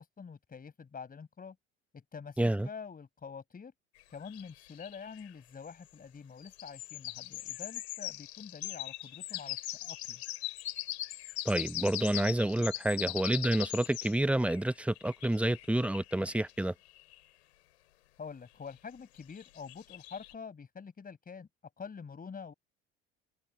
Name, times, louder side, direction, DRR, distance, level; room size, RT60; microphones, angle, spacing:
voice 1, 0.0-1.6 1.9-3.7 4.1-10.2 18.2-21.5 21.8-22.5, left 6 dB, 25° left, 6.4 m, -46 dB
voice 2, 2.4-2.7 11.4-16.7, right 1 dB, 5° right, 1.3 m, -29 dB
sound 1, 4.0-5.3 6.4-17.2 19.2-20.3, left 16 dB, 65° left, 3.4 m, -41 dB
figure-of-eight pair, 65°, 35 cm